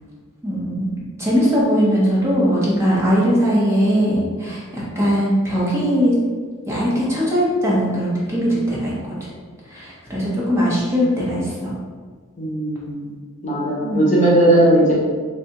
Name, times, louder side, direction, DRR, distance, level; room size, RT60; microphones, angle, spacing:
voice 1, 0.4-0.9 1.2-6.2 6.7-9.3 9.7-11.7 13.9-14.3, equal, 10° right, -7 dB, 0.8 m, -20 dB
voice 2, 12.4-13.1 13.4-14.9, right 1 dB, 35° left, -5 dB, 0.9 m, -17 dB
3.4 x 3.3 x 2.8 m, 1.5 s
head